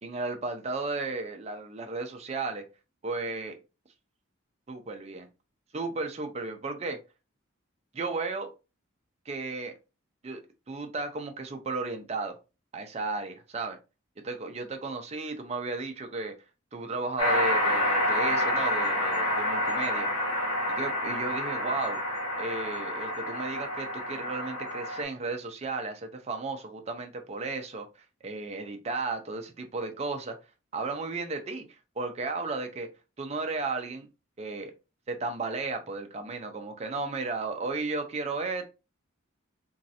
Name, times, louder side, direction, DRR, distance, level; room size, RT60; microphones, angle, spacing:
voice 1, 0.0-2.6 3.0-3.6 4.7-5.3 5.7-7.0 7.9-8.5 9.3-9.7 10.2-10.4 10.7-12.4 12.7-13.8 14.2-16.3 16.7-20.1 20.8-22.0 22.4-27.9 28.2-30.4 30.7-31.7 32.0-32.9 33.2-34.1 34.4-34.7 35.1-38.7, right 3 dB, 30° right, 0.4 m, -34 dB
sound 1, 17.2-25.0, left 1 dB, 75° left, 1.1 m, -28 dB
3.1 x 2.5 x 2.7 m
head